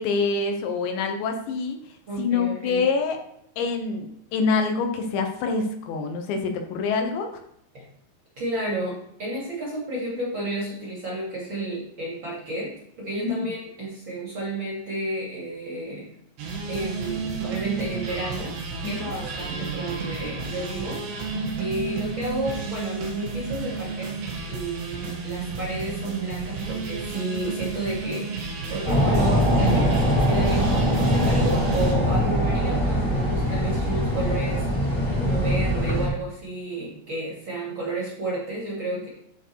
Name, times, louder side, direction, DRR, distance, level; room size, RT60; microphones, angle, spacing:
voice 1, 0.0-1.8 2.2-3.2 3.6-7.4 13.2-13.5 18.8-18.9 21.3-21.6, left 4 dB, 80° left, 5 dB, 3.3 m, -26 dB
voice 2, 2.1-2.8 7.7-7.8 8.4-12.7 13.0-16.1 16.7-18.6 18.8-21.3 21.6-24.1 24.5-39.1, right 2 dB, 35° right, -5 dB, 2.4 m, -32 dB
sound 1, 16.4-32.0, right 4 dB, 70° right, 3.7 m, -32 dB
sound 2, 28.8-36.1, equal, 15° left, 2.2 m, -22 dB
13.5 x 4.6 x 4.7 m, 0.75 s
omnidirectional pair, 5.2 m